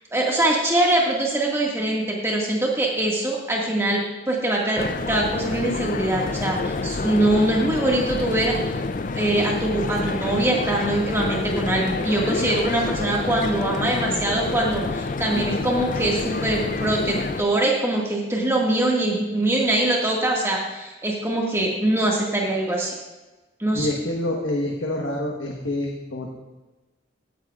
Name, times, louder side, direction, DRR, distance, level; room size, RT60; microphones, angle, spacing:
voice 1, 0.1-8.8 9.1-23.0 23.6-23.9, right 1 dB, 15° right, -2 dB, 1.8 m, -23 dB
sound 1, 4.8-17.4, left 3 dB, 45° left, 0.4 m, -28 dB
voice 2, 23.7-26.3, left 1 dB, 85° left, -1 dB, 1.3 m, -27 dB
17.0 x 9.5 x 2.4 m, 1.2 s
head